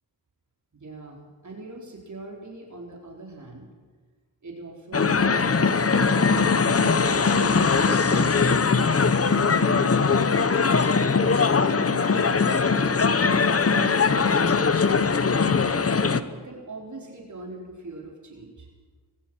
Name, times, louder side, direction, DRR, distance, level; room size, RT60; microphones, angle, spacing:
voice 1, 0.7-3.7 4.4-6.4 7.0-9.0 9.5-10.3 10.6-14.4 14.9-15.4 16.1-18.7, right 2 dB, 45° right, -1 dB, 4.2 m, -41 dB
sound 1, 4.9-16.2, left 5 dB, 35° left, 1.1 m, -21 dB
25.0 x 21.0 x 6.2 m, 1.4 s
cardioid pair, 75°, 41 cm